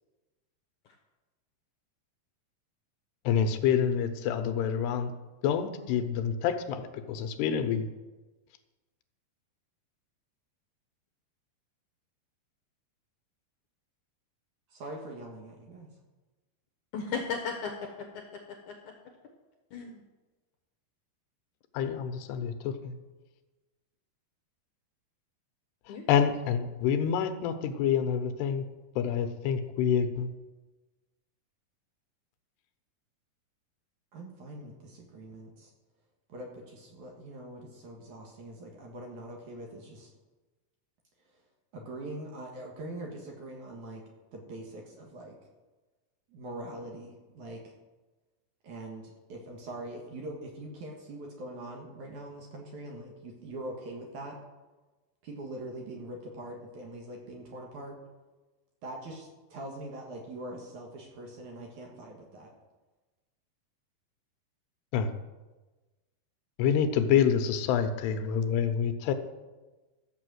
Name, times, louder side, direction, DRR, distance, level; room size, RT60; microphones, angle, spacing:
voice 1, 3.2-5.1 5.4-7.9 21.7-22.9 26.1-28.7 29.0-30.3 64.9-65.1 66.6-69.1, left 8 dB, 90° left, 8 dB, 3.0 m, -27 dB
voice 2, 14.7-15.9 34.1-35.7 36.3-40.1 41.7-44.0 44.3-45.4 46.3-47.6 48.6-54.4 55.2-58.0 58.8-62.5, right 1 dB, 55° right, 0 dB, 2.7 m, -43 dB
voice 3, 16.9-18.4 18.7-18.9 19.7-20.0 25.9-26.2, left 5 dB, 70° left, 3 dB, 1.9 m, -36 dB
14.0 x 6.4 x 7.7 m, 1.2 s
omnidirectional pair, 4.7 m